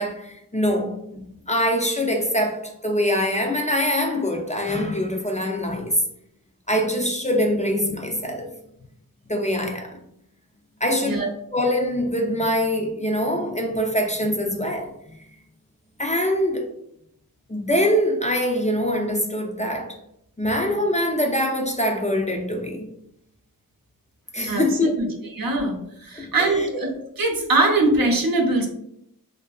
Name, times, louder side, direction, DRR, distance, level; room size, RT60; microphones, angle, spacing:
voice 1, 0.0-6.0 6.7-8.5 9.3-10.0 10.8-11.2 11.5-14.9 16.0-16.7 17.5-20.0 20.4-22.9 24.3-24.9 26.2-26.8, equal, 20° left, 0.4 m, -24 dB
voice 2, 24.5-25.1 25.3-26.9 27.2-28.7, right 2 dB, 70° right, 0.7 m, -22 dB
2.7 x 2.5 x 2.3 m
wide cardioid pair, 50°, 36 cm